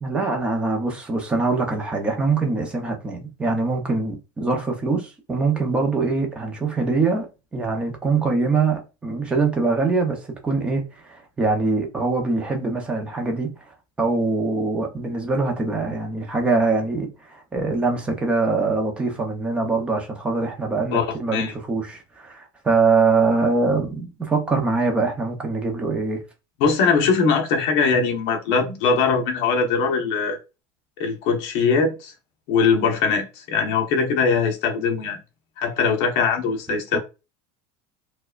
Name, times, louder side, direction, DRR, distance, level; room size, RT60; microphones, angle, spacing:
voice 1, 0.0-13.5 14.0-26.2 36.9-37.0, right 3 dB, 10° right, 0.6 m, -23 dB
voice 2, 20.9-21.5 26.6-30.4 31.0-32.1 32.5-35.2 35.6-37.0, left 5 dB, 45° left, 0.8 m, -21 dB
4.6 x 2.2 x 2.3 m
cardioid pair, 180°, 13 cm